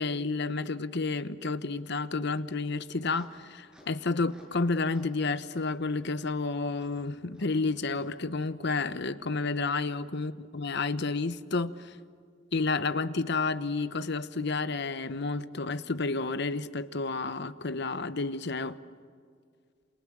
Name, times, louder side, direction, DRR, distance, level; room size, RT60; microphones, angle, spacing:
voice 1, 0.0-12.0 12.5-18.8, left 3 dB, 60° left, 13 dB, 1.0 m, -31 dB
sound 1, 2.8-4.6 4.9-5.2 5.5-5.6 6.2-6.3 6.8-6.9 7.3-7.5 8.0-8.1 8.7-8.8, left 1 dB, 5° right, 6.8 m, -58 dB
28.5 x 28.0 x 7.5 m, 2.2 s
head